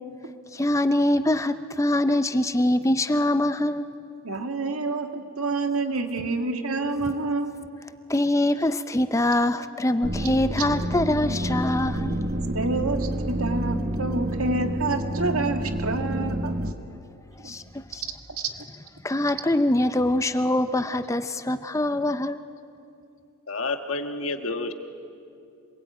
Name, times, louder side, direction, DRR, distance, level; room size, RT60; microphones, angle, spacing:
voice 1, 0.5-3.9 8.1-12.1 17.4-18.0 19.0-22.4, left 1 dB, 15° left, 11 dB, 0.5 m, -23 dB
voice 2, 4.2-7.5 12.5-16.5 17.4-17.5, right 3 dB, 80° right, 5 dB, 2.0 m, -28 dB
sound 1, 10.0-16.7, right 1 dB, 40° right, 1.1 m, -28 dB
voice 3, 23.5-24.7, left 3 dB, 65° left, 7 dB, 1.6 m, -29 dB
26.5 x 21.0 x 9.3 m, 2.6 s
head